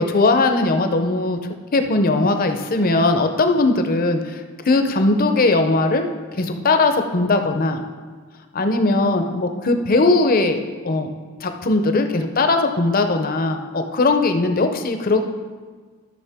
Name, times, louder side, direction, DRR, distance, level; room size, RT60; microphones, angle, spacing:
voice 1, 0.0-1.4 1.7-6.1 6.4-7.8 8.5-11.1 11.4-15.2, left 2 dB, 40° left, 7 dB, 0.6 m, -19 dB
13.0 x 6.2 x 3.5 m, 1.5 s
head